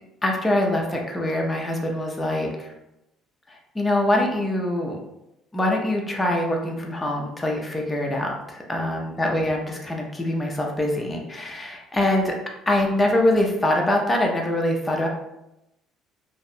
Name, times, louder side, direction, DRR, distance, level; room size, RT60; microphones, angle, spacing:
voice 1, 0.2-2.7 3.5-5.0 5.5-12.4 12.7-15.1, left 1 dB, 10° left, 0 dB, 0.4 m, -24 dB
2.7 x 2.1 x 2.5 m, 0.88 s
cardioid pair, 155°, 0 cm